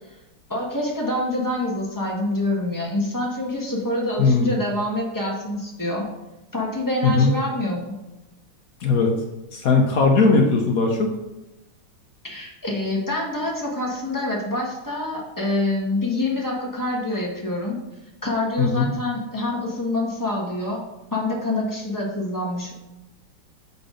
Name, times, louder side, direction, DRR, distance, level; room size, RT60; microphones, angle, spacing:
voice 1, 0.5-6.1 6.5-7.9 12.2-17.8 18.2-20.8 21.1-22.7, left 1 dB, 10° left, -3 dB, 1.0 m, -26 dB
voice 2, 4.2-4.5 7.0-7.3 8.8-9.1 9.5-11.1 18.6-18.9, left 4 dB, 65° left, 2 dB, 0.8 m, -18 dB
6.7 x 4.2 x 5.0 m, 0.97 s
omnidirectional pair, 2.4 m